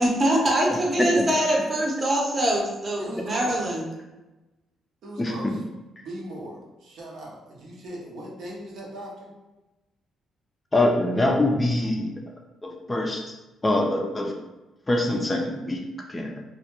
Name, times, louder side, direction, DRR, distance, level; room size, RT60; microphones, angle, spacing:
voice 1, 0.0-3.9, right 1 dB, 30° right, -2 dB, 0.7 m, -23 dB
voice 2, 3.0-3.6 5.0-5.5 6.0-9.3, right 1 dB, 75° right, -3 dB, 0.6 m, -38 dB
voice 3, 10.7-12.1 12.6-13.3 13.6-14.3 14.9-16.4, left 1 dB, 20° left, 1 dB, 0.4 m, -24 dB
2.1 x 2.1 x 2.9 m, 1.1 s
cardioid pair, 90°, 0 cm